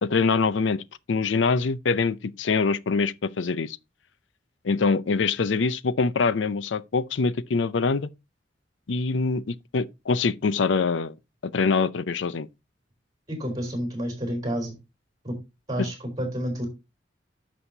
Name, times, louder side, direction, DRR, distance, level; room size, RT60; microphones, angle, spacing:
voice 1, 0.0-3.8 4.6-8.1 8.9-11.1 11.4-12.5 15.8-15.9, left 4 dB, 80° left, 0.5 m, -24 dB
voice 2, 13.3-14.8 15.2-15.4 15.7-16.7, equal, 20° right, 4.1 m, -29 dB
11.0 x 6.3 x 2.7 m
head